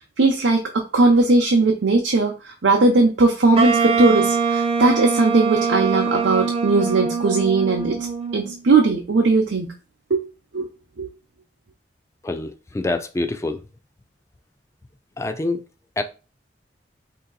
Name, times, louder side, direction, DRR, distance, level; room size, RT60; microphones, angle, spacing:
voice 1, 0.2-0.6 0.9-8.0 8.3-9.7 10.1-10.2 10.5-10.7 11.0-11.1, right 3 dB, 90° right, 0.6 m, -18 dB
Wind instrument woodwind instrument, 3.6-8.6, right 5 dB, 35° right, 0.5 m, -23 dB
voice 2, 12.2-13.6 15.2-15.6 16.0-16.1, left 2 dB, 15° left, 0.3 m, -26 dB
3.0 x 2.8 x 3.9 m
head